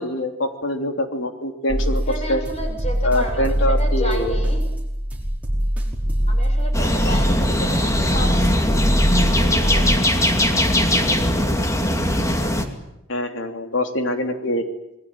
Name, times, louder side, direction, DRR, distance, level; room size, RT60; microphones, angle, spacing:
voice 1, 0.0-2.0 2.3-2.4 3.0-4.3 13.1-14.6, left 1 dB, 70° left, 6 dB, 3.3 m, -24 dB
sound 1, 1.7-10.0, equal, 5° right, 5.2 m, -22 dB
voice 2, 2.1-4.7 6.3-9.1 9.3-10.1, equal, 35° left, 4 dB, 7.1 m, -32 dB
sound 2, 6.7-12.7, left 1 dB, 15° left, 2.5 m, -20 dB
27.5 x 20.5 x 9.0 m, 0.87 s
head